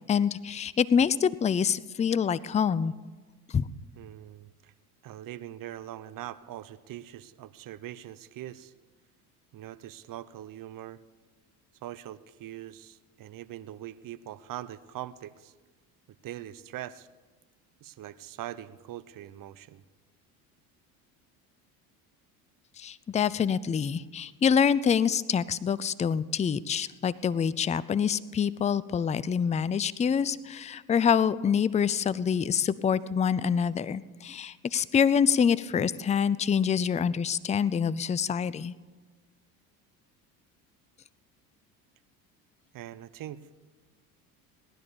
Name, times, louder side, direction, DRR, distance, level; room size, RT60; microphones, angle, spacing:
voice 1, 0.1-2.9 3.5-3.7 22.8-38.7, left 7 dB, 15° left, 19 dB, 0.4 m, -26 dB
voice 2, 4.0-4.7 5.0-8.7 9.5-11.0 11.8-15.5 16.2-17.1 17.8-19.8 42.7-43.4, right 13 dB, 45° right, 16 dB, 0.9 m, -42 dB
18.5 x 10.5 x 7.0 m, 1.3 s
hypercardioid pair, 70°, 45 cm